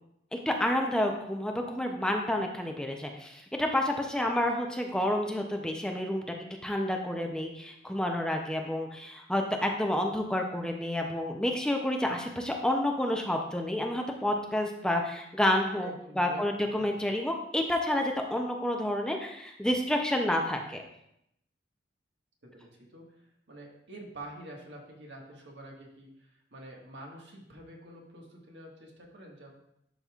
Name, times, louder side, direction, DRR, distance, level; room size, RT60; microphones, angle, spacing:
voice 1, 0.3-6.2 6.6-20.8, left 1 dB, 5° left, 2 dB, 0.5 m, -29 dB
voice 2, 15.7-16.4 16.9-17.0 22.4-23.1 23.5-29.5, right 1 dB, 80° right, -1 dB, 1.6 m, -47 dB
11.5 x 5.3 x 2.4 m, 0.77 s
head